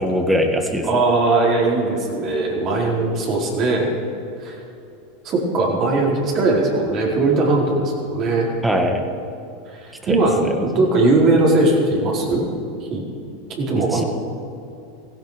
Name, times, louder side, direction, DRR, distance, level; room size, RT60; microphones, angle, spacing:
voice 1, 0.0-1.0 8.6-9.0 10.1-10.9 13.9-14.0, equal, 10° right, 4 dB, 1.9 m, -22 dB
voice 2, 0.8-3.9 4.4-4.6 5.2-8.5 9.8-12.5 12.9-13.0 13.6-14.1, right 2 dB, 45° right, -3 dB, 4.7 m, -19 dB
16.5 x 15.5 x 5.2 m, 2.7 s
hypercardioid pair, 100°, 0 cm